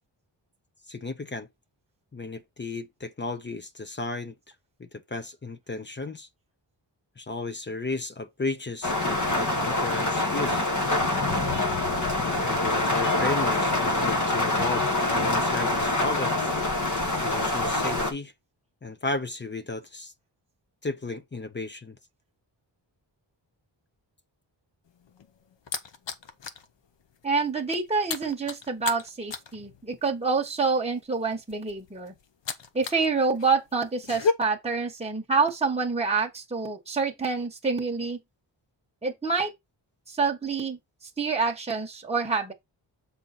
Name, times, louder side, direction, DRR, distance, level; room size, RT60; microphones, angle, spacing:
voice 1, 0.9-1.5 2.1-4.3 4.8-6.3 7.2-10.7 12.4-14.9 15.1-16.6 17.2-18.3 18.8-20.1 20.8-22.0, left 3 dB, 25° left, 0.6 m, -34 dB
sound 1, 8.8-18.1, left 2 dB, 40° left, 1.2 m, -25 dB
sound 2, 24.9-26.7 27.0-27.2 27.5-33.1 33.4-34.3, left 4 dB, 70° left, 1.0 m, -33 dB
voice 2, 27.2-32.1 32.7-38.2 39.0-39.5 40.1-40.8 41.2-42.5, right 4 dB, 15° right, 1.2 m, -27 dB
7.6 x 4.1 x 4.1 m
wide cardioid pair, 165°, 45 cm